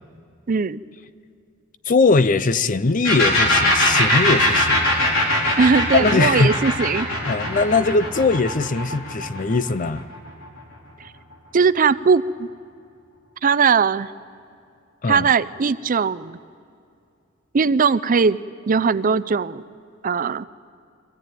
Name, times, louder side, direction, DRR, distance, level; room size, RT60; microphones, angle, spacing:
voice 1, 0.5-0.8 5.6-7.1 11.5-12.5 13.4-14.1 15.1-16.4 17.5-18.4 18.7-19.6 20.0-20.4, right 5 dB, 45° right, 15 dB, 0.5 m, -19 dB
voice 2, 1.9-4.8 5.9-6.5 7.3-10.1 15.0-15.3, left 3 dB, 40° left, 15 dB, 0.6 m, -20 dB
sound 1, 3.0-10.6, left 1 dB, 85° left, 4.9 m, -21 dB
24.0 x 16.5 x 9.2 m, 2.4 s
head